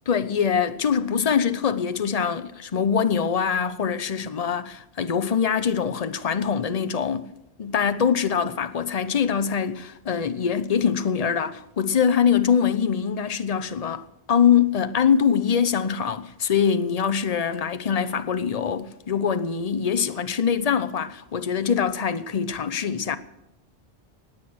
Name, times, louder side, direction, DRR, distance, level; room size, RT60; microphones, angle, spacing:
voice 1, 0.1-7.3 7.6-23.2, left 7 dB, 40° left, 0.8 m, -23 dB
18.5 x 8.8 x 6.2 m
omnidirectional pair, 1.1 m